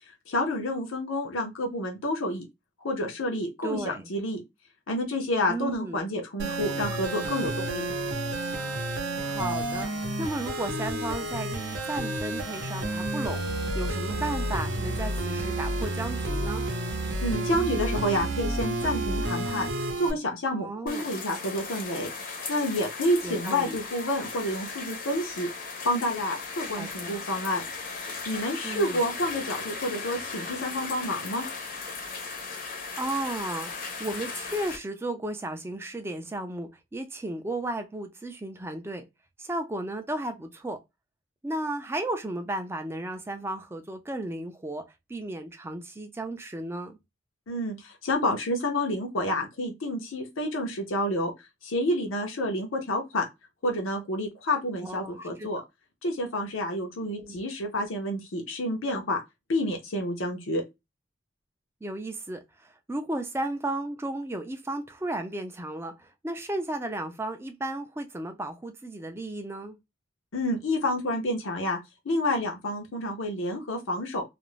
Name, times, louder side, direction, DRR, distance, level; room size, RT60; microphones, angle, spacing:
voice 1, 0.3-2.4 2.8-4.4 4.9-7.9 17.2-27.6 28.3-31.4 47.5-51.3 51.6-53.3 53.6-55.6 56.0-59.2 59.5-60.6 70.3-71.8 72.0-74.2, left 1 dB, 85° left, 0.7 m, -29 dB
voice 2, 3.6-4.1 5.5-6.0 9.2-9.9 10.2-16.7 20.5-21.1 23.2-23.8 26.8-27.2 28.6-29.1 32.5-39.0 39.4-40.8 41.4-44.8 45.1-47.0 54.8-55.6 57.2-57.4 61.8-69.8, right 2 dB, 10° right, 0.3 m, -34 dB
sound 1, 6.4-20.1, right 1 dB, 70° right, 0.7 m, -30 dB
sound 2, 20.9-34.8, left 4 dB, 45° left, 0.6 m, -37 dB
2.5 x 2.0 x 3.0 m
head